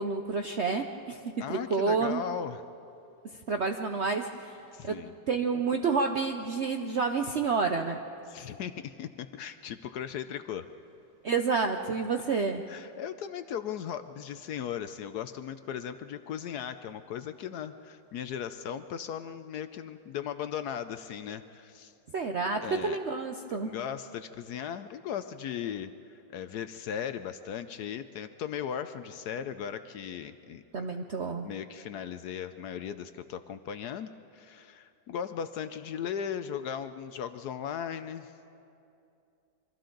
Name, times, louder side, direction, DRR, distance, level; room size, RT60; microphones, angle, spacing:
voice 1, 0.0-2.2 3.5-4.6 4.8-4.9 5.3-8.0 11.2-12.6 22.1-23.7 30.7-31.5, right 4 dB, 60° right, 5 dB, 0.7 m, -29 dB
voice 2, 1.4-2.6 4.7-5.1 8.3-10.7 12.7-21.9 22.6-23.0 23.6-30.9 31.4-38.3, left 8 dB, 70° left, 11 dB, 1.0 m, -37 dB
28.0 x 24.0 x 3.9 m, 2.6 s
omnidirectional pair, 2.0 m